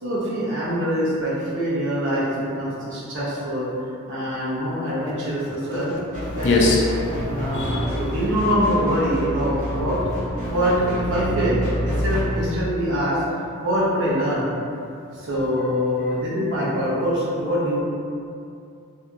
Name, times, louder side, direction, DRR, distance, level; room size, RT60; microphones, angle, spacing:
voice 1, 0.0-2.3 2.6-3.7 4.1-6.0 6.3-6.5 7.3-10.0 10.5-10.8 11.1-11.6 11.8-13.2 13.6-14.5 15.2-17.8, equal, 60° right, -8 dB, 0.8 m, -24 dB
sound 1, 6.1-12.2, equal, 35° right, 1.0 m, -28 dB
voice 2, 6.3-8.0, left 2 dB, 55° left, -3 dB, 0.4 m, -22 dB
2.7 x 2.6 x 2.3 m, 2.5 s
head